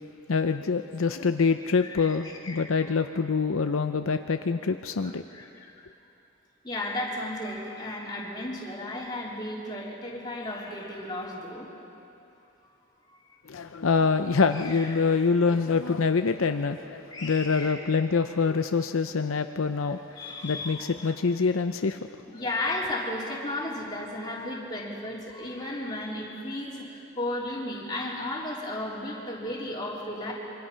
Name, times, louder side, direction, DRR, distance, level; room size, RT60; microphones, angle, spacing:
voice 1, 0.3-5.2 13.5-20.0 20.4-22.0, left 4 dB, 75° left, 8 dB, 0.6 m, -25 dB
voice 2, 1.8-2.1 2.4-2.7 5.0-5.7 6.6-11.7 13.1-13.2 14.5-15.2 17.1-17.7 19.8-21.0 22.3-30.3, left 1 dB, 20° left, -5 dB, 3.5 m, -34 dB
26.0 x 24.0 x 5.7 m, 2.8 s
head